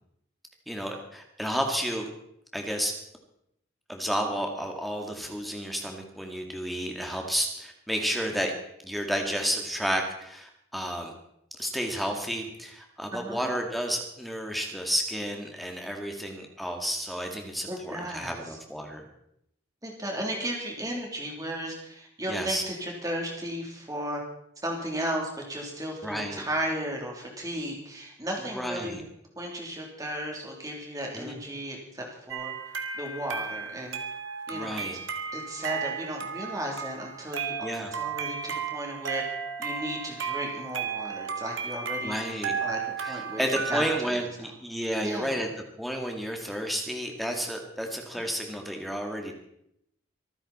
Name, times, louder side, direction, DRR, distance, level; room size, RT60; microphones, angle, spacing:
voice 1, 0.7-2.1 2.5-2.9 3.9-8.5 8.8-11.1 11.6-19.1 22.3-22.6 26.0-26.4 28.5-29.0 31.1-31.4 34.5-35.0 37.6-37.9 42.0-42.6 43.0-45.5 45.8-49.3, equal, ahead, 2 dB, 1.9 m, -31 dB
voice 2, 13.1-13.6 17.7-18.6 19.8-24.2 24.6-29.1 29.4-32.5 32.9-34.0 34.5-34.8 35.3-39.2 39.6-42.2 42.6-44.2 45.0-45.4, right 1 dB, 15° right, 0 dB, 3.2 m, -35 dB
sound 1, 32.3-44.0, right 6 dB, 70° right, 1.7 m, -34 dB
24.5 x 9.8 x 4.3 m, 0.76 s
head